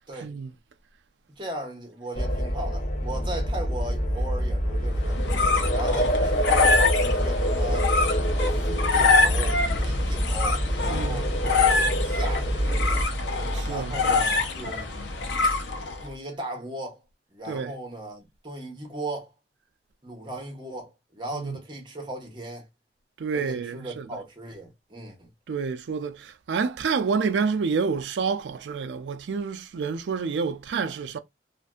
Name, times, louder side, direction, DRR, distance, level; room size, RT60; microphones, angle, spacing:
voice 1, 0.2-0.5 10.9-11.2 13.5-13.9 17.5-17.7 21.3-21.6 23.2-24.1 25.5-31.2, right 5 dB, 85° right, 0.4 m, -28 dB
voice 2, 1.4-5.2 5.7-7.9 8.6-13.1 13.6-14.9 16.0-17.0 17.3-19.3 20.0-22.7 23.3-25.3, right 1 dB, 25° right, 0.9 m, -37 dB
sound 1, 2.1-13.0, equal, 35° left, 0.6 m, -26 dB
sound 2, 4.9-16.1, left 3 dB, 80° left, 0.6 m, -25 dB
2.5 x 2.5 x 2.2 m
head